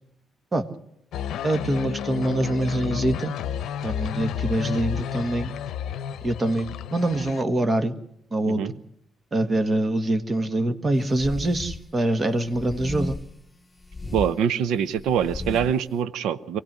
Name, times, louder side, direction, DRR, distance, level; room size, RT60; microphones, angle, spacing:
sound 1, 1.1-7.4, left 8 dB, 80° left, 0.7 m, -31 dB
voice 1, 1.4-3.4 3.8-5.5 6.2-7.9 8.3-8.6 9.3-13.2, right 1 dB, 30° right, 10 dB, 1.7 m, -24 dB
sound 2, 11.1-11.9 12.5-13.4 13.8-14.3 14.9-15.8, left 2 dB, 15° left, 1.3 m, -34 dB
voice 2, 14.1-16.6, right 8 dB, 85° right, 16 dB, 0.8 m, -24 dB
24.0 x 16.5 x 7.6 m, 0.75 s
cardioid pair, 90°, 0 cm